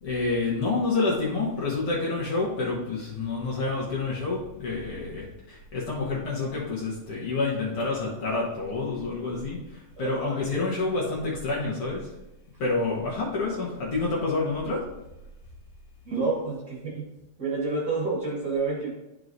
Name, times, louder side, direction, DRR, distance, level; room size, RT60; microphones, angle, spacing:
voice 1, 0.0-12.1 12.6-14.9, left 3 dB, 60° left, -5 dB, 1.8 m, -28 dB
voice 2, 10.0-10.4 16.0-17.1 17.4-18.9, right 3 dB, 45° right, -5 dB, 1.5 m, -29 dB
11.5 x 4.7 x 2.6 m, 0.95 s
omnidirectional pair, 3.4 m